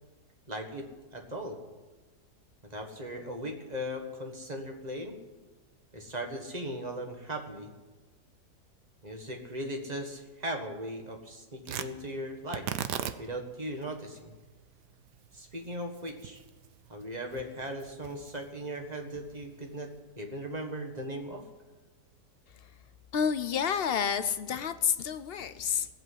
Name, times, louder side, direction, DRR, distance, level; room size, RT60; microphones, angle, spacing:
voice 1, 0.5-1.6 2.7-5.2 5.9-7.7 9.0-12.7 13.2-14.3 15.3-16.4 16.9-21.4, equal, 25° right, 3 dB, 1.7 m, -38 dB
Tearing, 11.6-20.0, right 10 dB, 90° right, 1.4 m, -41 dB
voice 2, 23.1-25.9, left 7 dB, 70° left, 12 dB, 0.5 m, -29 dB
17.0 x 8.0 x 9.7 m, 1.2 s
omnidirectional pair, 1.7 m